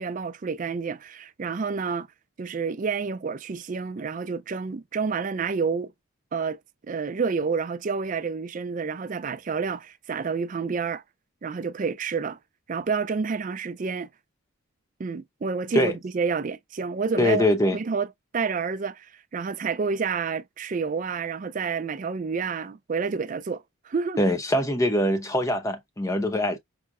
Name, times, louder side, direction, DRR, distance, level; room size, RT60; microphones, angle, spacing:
voice 1, 0.0-2.1 2.4-5.9 6.3-6.6 6.8-11.0 11.4-12.4 12.7-14.1 15.0-17.5 17.7-24.2, right 5 dB, 35° right, 0.3 m, -29 dB
voice 2, 17.2-17.8 24.2-26.6, left 1 dB, 15° left, 0.6 m, -23 dB
6.0 x 2.0 x 2.4 m
head